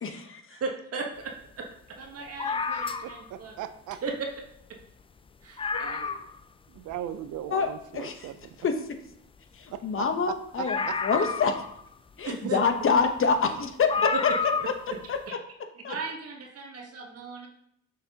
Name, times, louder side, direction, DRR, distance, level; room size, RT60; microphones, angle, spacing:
voice 1, 0.0-0.4 5.7-6.2 7.5-8.3 8.6-8.7 9.6-11.5 12.2-14.3 14.7-15.4 15.8-16.0, left 5 dB, 45° left, 7 dB, 1.0 m, -27 dB
voice 2, 0.5-1.6 2.0-3.6 4.0-4.1 5.4-6.1 12.2-12.6 14.1-14.2 15.3-15.4 15.9-17.5, right 4 dB, 50° right, 1 dB, 1.2 m, -36 dB
sound 1, 2.4-3.3 4.4-4.5 4.8-4.9 5.3-5.4 5.6-6.4 6.9-7.0 10.7-11.9 13.1-13.2 13.9-14.8 15.1-15.2, left 5 dB, 20° left, 0.3 m, -30 dB
voice 3, 3.0-4.0 6.7-8.6 9.7-9.8 10.3-11.0 12.4-12.5, right 11 dB, 80° right, 12 dB, 0.6 m, -38 dB
6.7 x 5.9 x 2.8 m, 0.73 s
cardioid pair, 90°, 30 cm